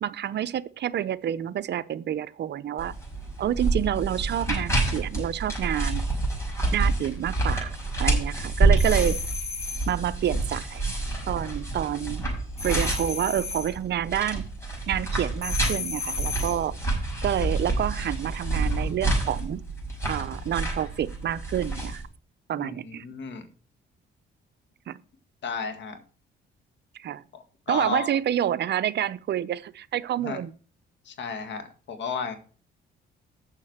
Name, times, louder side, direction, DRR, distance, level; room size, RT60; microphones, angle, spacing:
voice 1, 0.0-3.0 3.4-6.1 6.7-7.7 8.0-9.2 9.9-10.8 11.3-12.2 12.6-14.4 14.9-16.7 17.2-19.6 20.1-22.0 22.5-23.0 24.9-25.0 27.0-27.2 27.7-30.5, right 10 dB, 60° right, 0.6 m, -28 dB
sound 1, 2.8-22.0, right 2 dB, 15° left, 6.0 m, -28 dB
sound 2, 8.8-10.0 12.6-13.8 15.4-16.7, left 5 dB, 30° left, 1.9 m, -34 dB
voice 2, 22.6-23.5 25.4-26.0 27.3-28.1 30.2-30.4 31.1-32.3, left 5 dB, 65° left, 1.9 m, -33 dB
7.5 x 6.5 x 7.9 m
cardioid pair, 90°, 20 cm